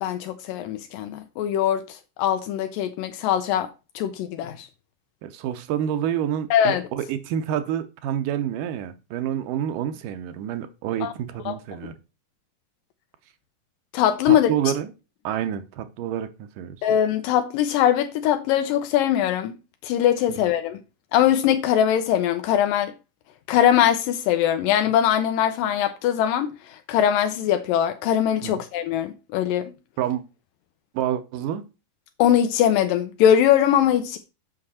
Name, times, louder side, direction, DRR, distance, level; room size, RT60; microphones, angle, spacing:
voice 1, 0.0-3.7 4.0-4.7 6.5-6.8 11.0-11.1 11.5-11.6 13.9-14.5 16.8-19.5 19.8-20.8 21.1-22.9 23.5-29.7 32.2-34.2, left 10 dB, 85° left, 2.4 m, -21 dB
voice 2, 5.2-11.9 14.3-14.9 15.2-16.8 20.3-20.4 28.4-28.5 30.0-30.2 30.9-31.6, right 10 dB, 80° right, 2.3 m, -28 dB
7.8 x 5.9 x 4.2 m
omnidirectional pair, 3.9 m